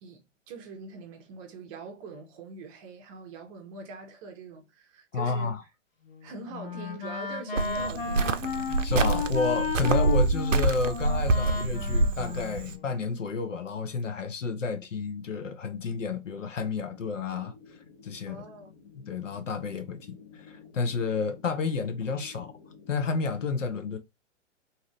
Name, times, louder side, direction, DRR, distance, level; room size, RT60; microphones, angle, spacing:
voice 1, 0.0-5.6 6.2-8.7 18.3-18.9, right 3 dB, 25° right, 0.7 m, -43 dB
voice 2, 5.1-5.6 8.8-17.5 18.0-18.4 19.0-20.0 20.3-22.5 22.9-24.0, left 4 dB, 80° left, 0.8 m, -31 dB
Wind instrument woodwind instrument, 6.0-13.2, left 5 dB, 50° left, 1.3 m, -34 dB
Cricket, 7.6-12.7, right 3 dB, 90° right, 0.5 m, -26 dB
sound 1, 16.9-23.5, left 5 dB, 20° left, 0.4 m, -52 dB
2.7 x 2.5 x 3.1 m
figure-of-eight pair, 120°, 37 cm